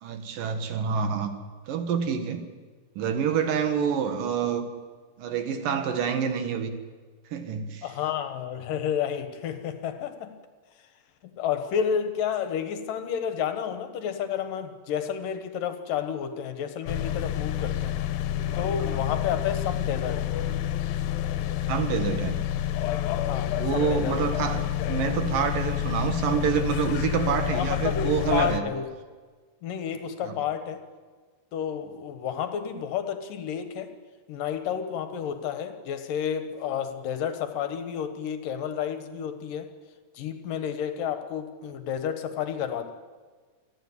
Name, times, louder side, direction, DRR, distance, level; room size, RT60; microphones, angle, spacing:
voice 1, 0.0-1.3 1.7-2.4 3.0-4.7 5.2-6.8 7.3-7.9 18.9-19.0 21.5-22.4 23.6-28.6 30.2-30.3, right 7 dB, 75° right, 7 dB, 3.3 m, -27 dB
voice 2, 7.8-10.3 11.2-18.0 18.5-20.3 23.2-24.3 27.6-28.9 29.6-30.8 31.5-33.9 34.3-39.7 40.1-42.9, left 8 dB, 75° left, 9 dB, 2.9 m, -31 dB
sound 1, 16.9-28.6, left 11 dB, 90° left, 2.7 m, -28 dB
28.0 x 10.0 x 9.8 m, 1.4 s
omnidirectional pair, 4.0 m